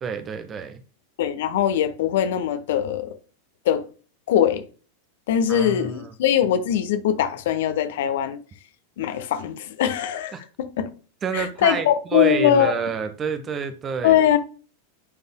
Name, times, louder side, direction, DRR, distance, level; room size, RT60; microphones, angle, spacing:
voice 1, 0.0-0.8 5.5-6.1 10.3-10.4 11.2-14.2, right 6 dB, 25° right, 0.9 m, -28 dB
voice 2, 1.2-3.2 3.6-3.8 4.3-4.6 5.3-8.4 9.0-10.9 11.3-12.7 14.0-14.4, left 10 dB, 55° left, 1.0 m, -21 dB
9.7 x 5.3 x 2.2 m
figure-of-eight pair, 90°, 0 cm